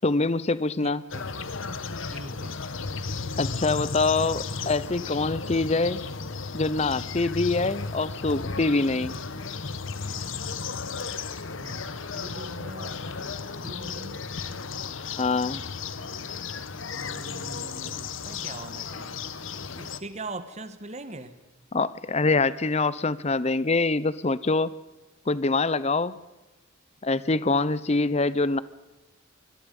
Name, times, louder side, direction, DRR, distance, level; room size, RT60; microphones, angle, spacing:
voice 1, 0.0-1.0 3.4-6.1 6.5-9.2 15.2-15.6 21.7-24.7 25.3-26.1 27.0-28.6, left 3 dB, 30° left, 17 dB, 0.7 m, -24 dB
voice 2, 0.8-1.5 2.1-2.6 11.5-13.4 13.6-14.2 16.9-19.2 19.7-21.3 27.1-27.3, right 2 dB, 35° right, 11 dB, 1.5 m, -42 dB
sound 1, 1.1-20.0, left 4 dB, 70° left, 1.2 m, -34 dB
25.0 x 21.5 x 5.4 m, 1.1 s
head